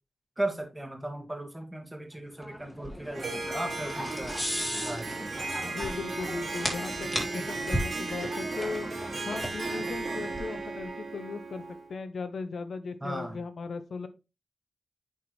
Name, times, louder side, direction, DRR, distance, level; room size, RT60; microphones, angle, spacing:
voice 1, 0.4-4.4 4.8-5.2 13.0-13.4, right 1 dB, 15° right, 3 dB, 1.8 m, -36 dB
sound 1, 2.4-10.9, equal, 15° left, 2.4 m, -36 dB
Harp, 3.1-11.9, right 3 dB, 70° right, 2.5 m, -36 dB
voice 2, 5.6-8.9 9.2-11.6 11.9-14.1, left 4 dB, 80° left, 10 dB, 0.7 m, -37 dB
8.3 x 4.3 x 3.1 m, 0.28 s
cardioid pair, 65°, 0 cm